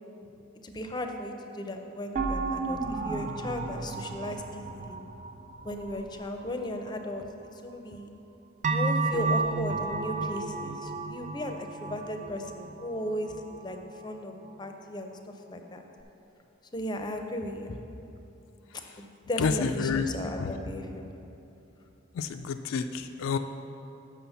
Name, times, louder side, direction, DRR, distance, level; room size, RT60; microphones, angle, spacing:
voice 1, 0.6-5.0 5.6-7.2 7.5-8.1 8.7-13.3 13.6-13.8 14.0-15.1 15.5-15.8 16.7-17.8 19.0-21.0, left 1 dB, 20° left, 5 dB, 0.5 m, -36 dB
sound 1, 2.2-6.6 8.6-14.0 14.4-14.5, right 3 dB, 40° right, 0.4 m, -32 dB
voice 2, 19.4-20.1 20.4-20.5 22.1-23.4, left 5 dB, 85° left, 7 dB, 0.3 m, -29 dB
6.0 x 5.7 x 7.0 m, 2.8 s
head